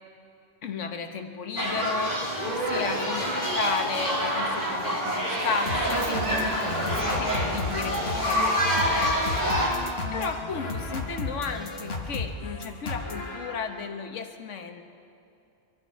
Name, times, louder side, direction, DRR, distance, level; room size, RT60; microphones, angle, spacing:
voice 1, 0.6-6.5 6.8-9.1 10.1-14.8, left 5 dB, 80° left, 6 dB, 1.4 m, -34 dB
sound 1, 1.6-9.7, equal, 35° right, 3.0 m, -27 dB
sound 2, 5.7-13.9, left 3 dB, 55° left, 1.4 m, -34 dB
voice 2, 5.9-8.1 9.4-9.9 10.4-10.5, right 2 dB, 75° right, -2 dB, 2.5 m, -35 dB
23.0 x 13.0 x 4.5 m, 2.6 s
omnidirectional pair, 1.2 m